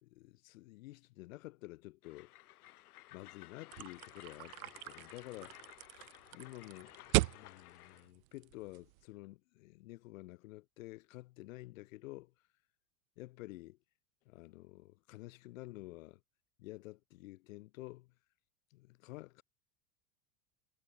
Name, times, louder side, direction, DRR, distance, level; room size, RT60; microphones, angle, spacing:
voice 1, 0.0-2.3 3.1-12.3 13.2-13.8 14.2-16.2 16.6-18.1 18.7-19.4, left 19 dB, 60° left, 1.3 m, -51 dB
Train, 2.0-8.1, left 16 dB, 85° left, 2.7 m, -56 dB
sound 1, 3.7-9.0, right 21 dB, 65° right, 0.6 m, -38 dB
supercardioid pair, 180°, 44 cm